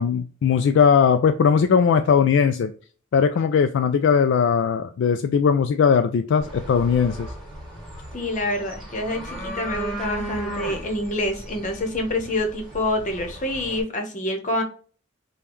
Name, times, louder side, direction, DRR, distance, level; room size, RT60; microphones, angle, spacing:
voice 1, 0.0-2.7 3.1-7.3, left 6 dB, 65° left, 0.3 m, -19 dB
sound 1, 6.4-13.8, equal, ahead, 1.7 m, -36 dB
voice 2, 8.1-14.6, left 1 dB, 40° left, 0.9 m, -27 dB
5.2 x 2.3 x 3.0 m
head